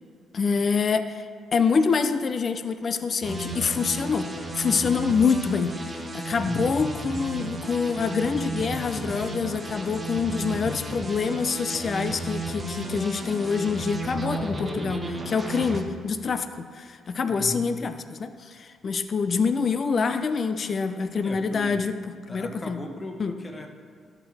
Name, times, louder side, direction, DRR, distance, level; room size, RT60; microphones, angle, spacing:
voice 1, 0.3-1.3 1.5-4.3 4.6-22.0 22.3-22.8 23.2-23.3, left 5 dB, 45° left, 9 dB, 0.5 m, -26 dB
sound 1, 3.2-15.8, right 2 dB, 20° right, 1.4 m, -33 dB
voice 2, 6.4-6.8 17.3-17.6 21.2-21.8 22.3-23.7, left 1 dB, 20° left, 4 dB, 1.1 m, -37 dB
13.0 x 6.0 x 3.4 m, 2.1 s
cardioid pair, 90°, 0 cm